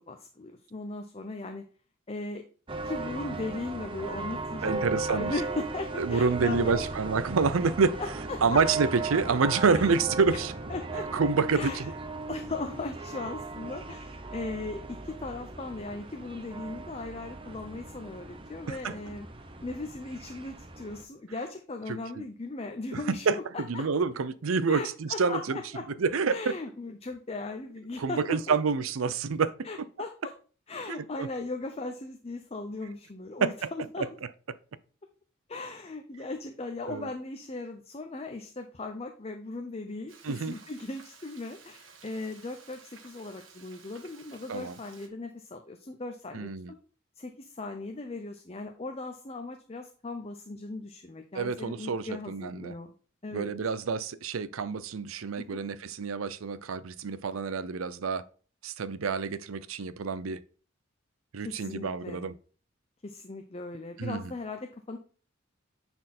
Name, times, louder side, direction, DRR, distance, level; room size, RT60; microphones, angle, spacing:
voice 1, 0.1-1.6 2.1-2.4 2.8-6.9 8.0-8.6 9.7-9.9 10.3-10.4 10.7-11.1 11.5-11.9 12.3-19.3 19.6-23.9 24.7-25.9 26.3-28.6 29.6-30.3 30.7-34.1 35.5-46.8 47.2-52.9 53.2-53.5 55.4-55.6 61.4-62.3 63.0-65.0, left 3 dB, 30° left, 0.6 m, -38 dB
sound 1, 2.7-21.0, right 3 dB, 25° right, 0.8 m, -37 dB
voice 2, 4.6-5.3 6.0-8.0 8.4-10.5 11.1-11.9 18.7-19.0 21.9-22.2 22.9-23.4 23.7-25.6 26.0-26.4 28.0-29.7 30.9-31.3 33.4-33.5 36.9-37.1 40.2-40.6 44.5-44.8 46.3-46.7 51.3-52.7 53.3-58.2 58.6-60.4 61.3-62.3 64.0-64.3, right 5 dB, 85° right, 0.6 m, -28 dB
Frying (food), 40.1-45.1, right 5 dB, 70° right, 1.4 m, -54 dB
9.8 x 4.4 x 4.2 m
head